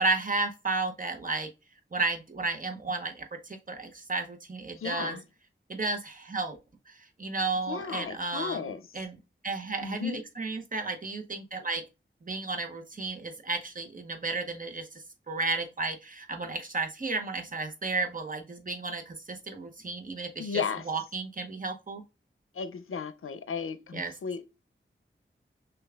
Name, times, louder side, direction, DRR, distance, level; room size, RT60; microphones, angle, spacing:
voice 1, 0.0-1.5 1.9-5.2 5.7-6.6 6.9-7.0 7.2-8.6 8.9-9.2 9.4-11.8 12.2-14.9 15.3-22.0 23.9-24.1, right 3 dB, 40° right, 0.7 m, -33 dB
voice 2, 4.7-5.2 7.7-8.9 9.8-10.2 20.4-20.9 22.5-24.4, left 6 dB, 85° left, 0.5 m, -34 dB
6.3 x 2.3 x 2.3 m
wide cardioid pair, 80°, 21 cm